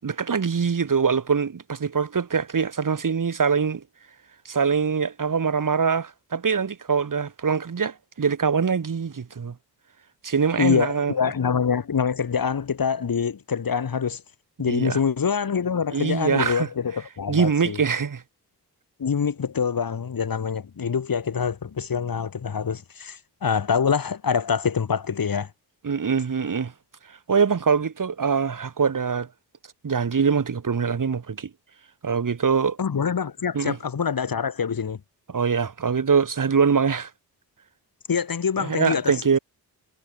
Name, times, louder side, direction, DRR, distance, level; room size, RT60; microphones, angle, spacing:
voice 1, 0.0-3.8 4.4-9.5 10.2-11.1 14.7-15.0 15.9-16.7 17.3-18.2 25.8-26.7 27.1-29.3 29.8-31.5 32.0-32.8 33.5-33.8 35.3-37.1 38.6-39.4, right 6 dB, 50° right, 6.2 m, -23 dB
voice 2, 10.6-14.2 14.6-17.8 19.0-25.5 32.8-35.0 38.1-39.1, left 6 dB, 60° left, 6.2 m, -25 dB
wide cardioid pair, 125°, 40 cm